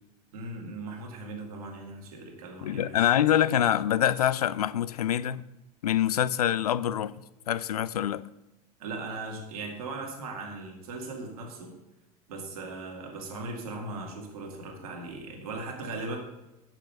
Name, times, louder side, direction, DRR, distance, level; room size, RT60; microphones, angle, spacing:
voice 1, 0.3-3.1 8.8-11.8 12.3-16.2, right 3 dB, 70° right, 2.0 m, -38 dB
voice 2, 2.6-5.4 5.8-7.1 7.5-8.3, left 11 dB, 80° left, 0.4 m, -25 dB
6.6 x 6.2 x 6.6 m
figure-of-eight pair, 75°, 20 cm